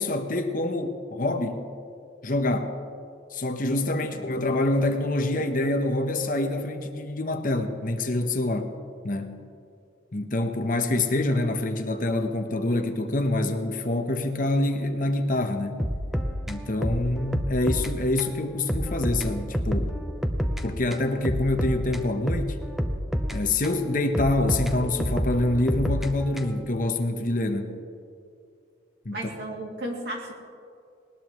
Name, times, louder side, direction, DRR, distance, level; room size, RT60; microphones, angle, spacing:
voice 1, 0.0-1.6 2.2-2.7 3.3-8.7 9.0-9.4 10.1-15.9 16.5-20.0 20.6-22.6 23.3-27.8 29.0-29.3, left 2 dB, 45° left, 6 dB, 1.0 m, -26 dB
sound 1, 15.8-17.9 18.2-18.3 18.7-20.6 20.9-23.8 24.1-26.7, equal, ahead, 0.7 m, -28 dB
voice 2, 29.1-30.3, right 1 dB, 55° right, -1 dB, 2.6 m, -34 dB
19.5 x 19.5 x 3.1 m, 2.4 s
head